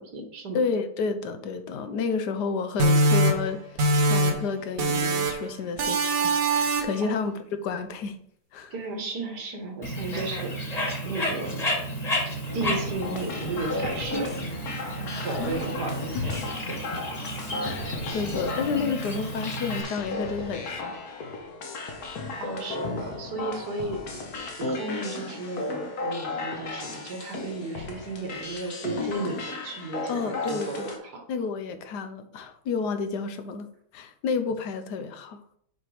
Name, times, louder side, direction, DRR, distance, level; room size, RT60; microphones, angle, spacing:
voice 1, 0.0-0.6 7.0-7.2 8.7-10.5 11.0-11.6 12.5-14.3 15.2-17.0 22.4-24.0 24.6-31.2, right 3 dB, 85° right, 4 dB, 2.0 m, -34 dB
voice 2, 0.5-8.2 8.5-8.7 15.1-15.6 16.1-16.3 17.6-21.0 30.1-31.0 31.3-33.7 33.9-35.4, left 5 dB, 90° left, 9 dB, 1.4 m, -31 dB
sound 1, 2.8-4.5 4.8-5.5 5.8-7.1, right 1 dB, 60° right, 1.4 m, -23 dB
Bird, 9.8-19.8, equal, 25° left, 1.3 m, -32 dB
sound 2, 12.5-31.0, left 3 dB, 70° left, 1.7 m, -34 dB
6.6 x 4.5 x 4.9 m, 0.67 s
omnidirectional pair, 1.7 m